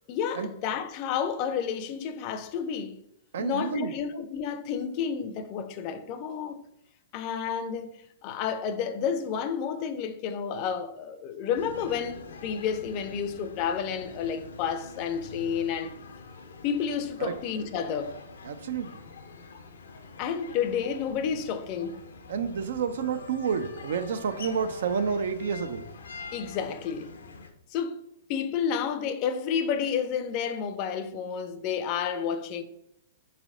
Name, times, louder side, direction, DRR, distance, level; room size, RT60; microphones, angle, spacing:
voice 1, 0.1-3.0 3.4-6.6 7.1-15.9 16.6-18.1 20.2-22.0 26.3-27.1 27.7-28.0 28.3-32.6, left 7 dB, 40° left, 0.5 m, -30 dB
voice 2, 3.3-3.9 17.2-17.3 18.4-19.0 22.3-25.8, right 6 dB, 70° right, 0.4 m, -29 dB
sound 1, 11.5-27.5, left 4 dB, 85° left, 0.6 m, -45 dB
4.0 x 3.3 x 3.6 m
hypercardioid pair, 125°, 0 cm